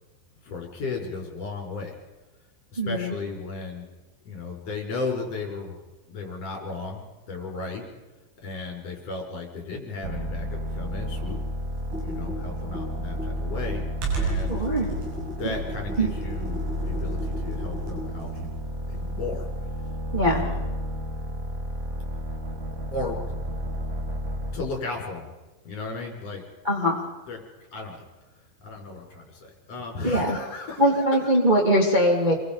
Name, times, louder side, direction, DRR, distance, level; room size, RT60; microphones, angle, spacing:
voice 1, 0.4-1.9 2.7-3.9 4.3-5.8 6.1-7.0 7.3-7.8 8.4-11.4 12.0-13.8 14.1-14.6 15.4-18.6 18.9-19.7 20.2-20.7 22.9-23.2 24.5-25.3 25.7-26.4 27.3-27.4 27.7-28.1 28.6-31.3, left 3 dB, 35° left, 1 dB, 5.5 m, -35 dB
voice 2, 2.8-3.1 14.5-14.9 16.0-16.1 20.1-20.4 26.6-27.0 30.0-30.4 30.8-32.3, equal, 10° right, -2 dB, 2.3 m, -21 dB
sound 1, 10.0-24.7, equal, 50° right, 0.8 m, -32 dB
Computer keyboard, 11.8-18.6, right 2 dB, 90° right, 9.8 m, -34 dB
28.5 x 23.5 x 5.2 m, 1.2 s
omnidirectional pair, 5.6 m